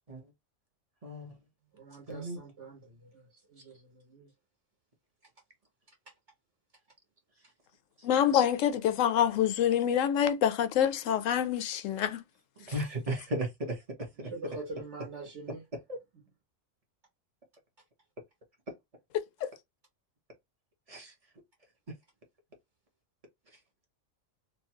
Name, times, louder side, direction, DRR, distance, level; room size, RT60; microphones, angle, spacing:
voice 1, 1.0-1.4 2.1-2.4 12.6-14.3 15.9-16.0 20.9-21.1, right 1 dB, 30° right, 0.8 m, -35 dB
voice 2, 1.8-3.2 3.5-4.3 14.3-15.6, right 3 dB, 60° right, 1.5 m, -44 dB
voice 3, 8.0-12.2 19.4-19.5, left 9 dB, 75° left, 0.9 m, -26 dB
3.1 x 2.2 x 2.8 m
omnidirectional pair, 1.4 m